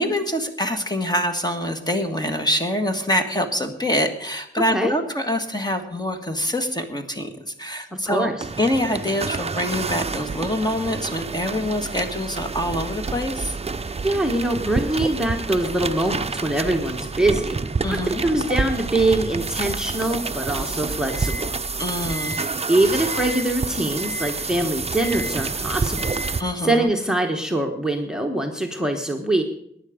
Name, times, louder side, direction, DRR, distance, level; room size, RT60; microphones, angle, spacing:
voice 1, 0.0-8.3 8.6-13.5 17.8-18.2 21.8-22.5 26.4-26.9, left 1 dB, 20° left, 5 dB, 1.6 m, -25 dB
sound 1, 8.4-26.4, right 4 dB, 30° right, 0.6 m, -28 dB
voice 2, 14.0-17.6 17.9-21.5 22.7-26.2 26.6-29.4, right 1 dB, 5° right, 4 dB, 1.3 m, -23 dB
18.0 x 10.5 x 5.1 m, 0.73 s
wide cardioid pair, 110°, 20 cm